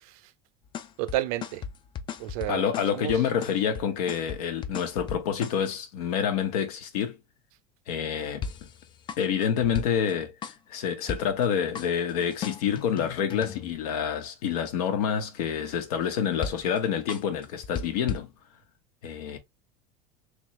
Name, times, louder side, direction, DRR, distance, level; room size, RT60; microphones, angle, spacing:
sound 1, 0.6-5.6 8.4-10.1 10.4-10.8 11.1-11.5 11.8-13.8 16.4-16.8 17.1-18.2, left 7 dB, 25° left, 0.4 m, -37 dB
voice 1, 1.0-1.6 2.2-2.7 2.9-3.1, right 15 dB, 75° right, 0.5 m, -30 dB
voice 2, 2.5-7.2 7.9-8.4 9.2-10.3 10.7-18.3 19.0-19.4, left 8 dB, 85° left, 1.1 m, -27 dB
3.5 x 3.0 x 3.0 m
supercardioid pair, 145°, 19 cm